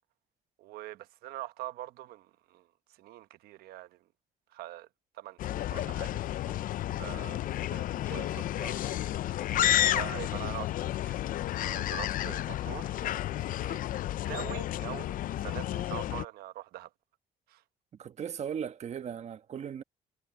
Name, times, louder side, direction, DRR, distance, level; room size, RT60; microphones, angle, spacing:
voice 1, 0.6-2.7 3.0-4.0 4.5-4.9 5.1-6.2 7.0-7.4 7.7-8.8 9.9-11.0 11.6-13.2 13.5-13.8 14.2-16.9 17.5-17.6, right 15 dB, 85° right, 1.0 m, -43 dB
sound 1, 5.4-16.2, left 13 dB, 60° left, 0.5 m, -31 dB
sound 2, 5.7-5.9 6.5-6.6 7.0-7.2 7.6-7.8 8.1-9.0 9.4-9.5 9.9-11.3, left 2 dB, 10° left, 1.3 m, -56 dB
voice 2, 18.0-19.8, right 8 dB, 45° right, 1.3 m, -37 dB
cardioid pair, 105°, 16 cm